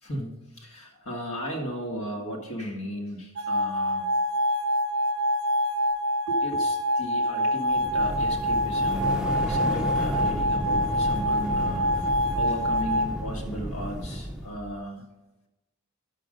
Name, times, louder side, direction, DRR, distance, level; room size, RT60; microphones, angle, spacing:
voice 1, 0.0-4.1 6.3-15.0, equal, 75° left, 1 dB, 1.7 m, -36 dB
sound 1, 3.4-13.1, equal, 55° right, 0.6 m, -26 dB
sound 2, 7.7-14.7, equal, 5° right, 0.6 m, -32 dB
11.5 x 6.5 x 5.1 m, 1.0 s
head